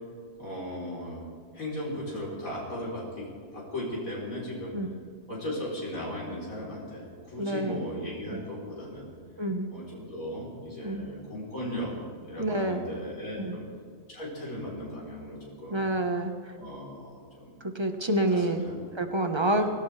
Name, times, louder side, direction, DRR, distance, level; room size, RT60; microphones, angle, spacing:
voice 1, 0.4-1.3 1.5-3.3 3.5-4.7 5.3-9.1 9.7-11.9 12.2-13.7 14.1-15.9 16.6-17.6 18.3-18.8 19.5-19.7, left 1 dB, 85° left, -5 dB, 4.6 m, -37 dB
voice 2, 7.4-7.8 8.3-8.4 9.4-9.7 10.8-11.0 12.4-12.8 13.4-13.6 15.7-16.3 17.7-18.6 18.9-19.7, right 1 dB, 20° right, 5 dB, 1.3 m, -27 dB
24.0 x 17.5 x 3.4 m, 2.3 s
omnidirectional pair, 1.4 m